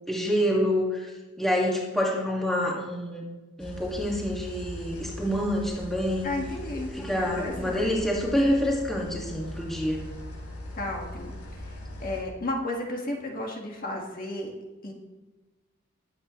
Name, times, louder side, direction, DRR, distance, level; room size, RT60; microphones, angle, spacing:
voice 1, 0.1-1.1 1.4-3.2 3.6-6.3 6.9-10.0, equal, ahead, -3 dB, 1.8 m, -27 dB
sound 1, 3.6-12.2, left 1 dB, 90° left, 4.3 m, -40 dB
voice 2, 6.2-6.9 7.4-8.0 10.7-11.7 12.0-14.5 14.8-14.9, left 1 dB, 40° left, 0 dB, 1.7 m, -33 dB
21.0 x 8.3 x 3.1 m, 1.2 s
head